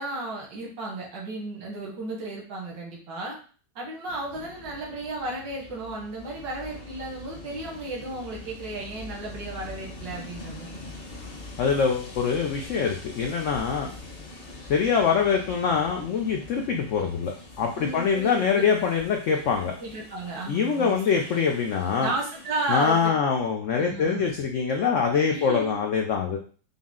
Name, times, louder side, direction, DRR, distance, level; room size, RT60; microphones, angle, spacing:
voice 1, 0.0-3.4 3.8-10.8 17.8-18.6 19.8-21.0 22.0-23.0 23.8-24.3 25.2-25.8, right 2 dB, 85° right, -2 dB, 1.9 m, -34 dB
Train, 4.1-23.1, left 2 dB, 40° left, 1.0 m, -44 dB
voice 2, 11.6-13.9 14.7-19.8 20.5-22.1 22.7-26.4, left 6 dB, 85° left, 2 dB, 0.6 m, -24 dB
5.5 x 2.1 x 3.6 m, 0.40 s
omnidirectional pair, 1.9 m